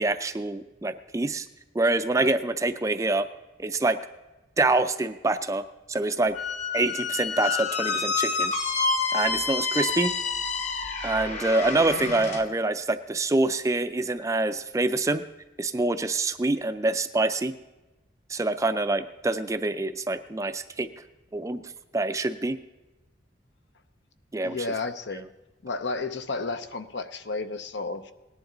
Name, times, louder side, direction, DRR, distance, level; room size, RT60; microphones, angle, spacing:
voice 1, 0.0-1.5 1.7-3.3 3.6-4.0 4.6-6.3 6.7-8.5 9.1-10.1 11.0-15.2 15.6-17.5 18.3-20.9 21.3-21.6 21.9-22.6 24.3-24.6, right 2 dB, 15° right, 10 dB, 0.4 m, -26 dB
Squeak, 6.3-12.4, left 4 dB, 35° left, 1.0 m, -28 dB
voice 2, 24.4-25.3 25.6-28.1, left 3 dB, 70° left, 10 dB, 0.7 m, -32 dB
18.0 x 10.5 x 3.9 m, 1.1 s
head